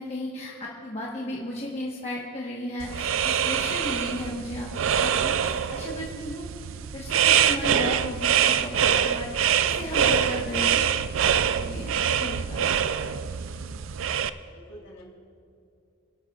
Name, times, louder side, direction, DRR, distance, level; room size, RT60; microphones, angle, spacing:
voice 1, 0.0-4.7 5.0-6.4 6.9-10.8 11.6-11.9 12.2-12.6, left 1 dB, 30° left, -4 dB, 1.2 m, -35 dB
sound 1, 2.8-14.3, right 8 dB, 75° right, 0.4 m, -24 dB
voice 2, 14.5-15.0, equal, 60° left, -2 dB, 3.1 m, -50 dB
28.0 x 11.5 x 2.4 m, 2.6 s
head